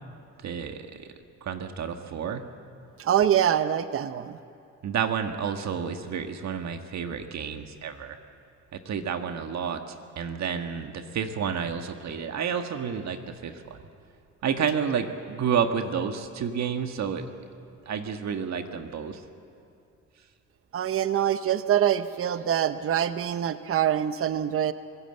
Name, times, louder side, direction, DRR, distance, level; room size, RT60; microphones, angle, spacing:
voice 1, 0.4-1.1 1.4-2.4 4.8-8.2 8.7-13.8 14.4-17.3 17.8-19.2, right 7 dB, 65° right, 6 dB, 1.6 m, -30 dB
voice 2, 3.0-4.4 20.7-24.7, right 10 dB, 50° right, 12 dB, 0.8 m, -24 dB
25.0 x 16.0 x 7.8 m, 2.7 s
cardioid pair, 90°, 30 cm